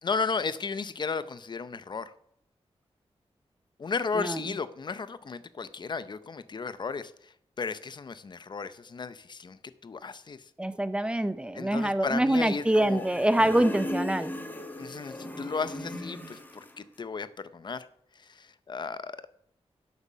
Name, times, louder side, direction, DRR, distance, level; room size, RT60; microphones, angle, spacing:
voice 1, 0.0-2.1 3.8-10.4 11.5-13.1 14.8-17.3 17.5-17.9 18.2-19.3, left 4 dB, 45° left, 14 dB, 0.6 m, -34 dB
voice 2, 4.1-4.6 10.6-14.3, right 1 dB, 10° right, 12 dB, 0.6 m, -25 dB
sound 1, 12.4-16.8, left 1 dB, 15° left, 1.2 m, -38 dB
11.0 x 8.2 x 6.2 m, 0.73 s
wide cardioid pair, 155°, 11 cm